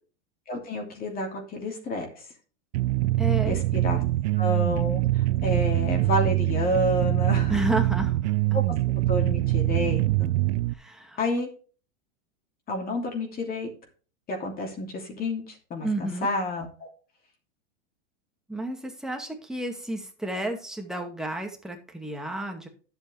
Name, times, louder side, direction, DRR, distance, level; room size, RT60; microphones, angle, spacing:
voice 1, 0.5-2.1 3.5-4.0 4.4-7.6 8.5-8.6 9.1-10.3 11.2-11.5 12.7-13.7 14.3-15.4 15.7-16.9, left 1 dB, 25° left, 2 dB, 2.8 m, -29 dB
sound 1, 2.7-10.7, right 17 dB, 75° right, 0.6 m, -24 dB
voice 2, 3.2-3.6 7.5-8.3 10.7-11.2 15.8-16.3 18.5-22.7, right 1 dB, ahead, 2 dB, 2.1 m, -31 dB
11.0 x 8.0 x 3.3 m, 0.38 s
supercardioid pair, 140°, 34 cm